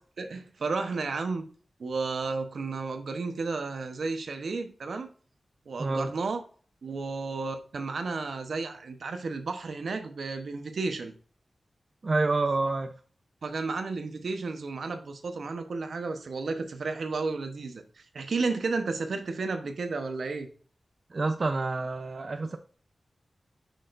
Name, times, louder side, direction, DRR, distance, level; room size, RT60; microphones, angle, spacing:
voice 1, 0.2-1.4 1.8-5.1 5.7-6.4 6.8-11.1 13.4-20.5, right 4 dB, 80° right, 7 dB, 0.9 m, -32 dB
voice 2, 5.8-6.1 12.0-12.9 21.1-22.6, right 3 dB, 55° right, 7 dB, 0.6 m, -28 dB
6.5 x 6.4 x 2.6 m, 0.42 s
cardioid pair, 55°, 0 cm